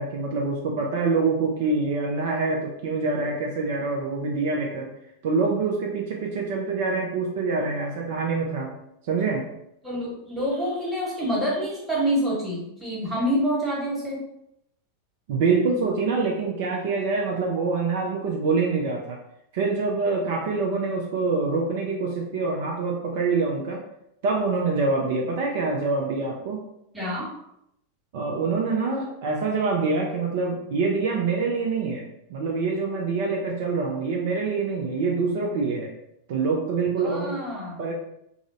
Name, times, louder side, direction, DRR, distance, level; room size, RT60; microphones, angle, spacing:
voice 1, 0.0-4.9 5.2-8.7 9.1-9.5 15.3-19.2 19.5-23.9 24.2-26.6 28.1-35.9 36.3-37.4 37.8-37.9, right 4 dB, 50° right, -1 dB, 0.4 m, -25 dB
voice 2, 9.8-14.2 26.9-27.3 37.0-37.8, equal, 10° right, -6 dB, 1.2 m, -27 dB
3.6 x 2.0 x 2.5 m, 0.79 s
figure-of-eight pair, 90°, 0 cm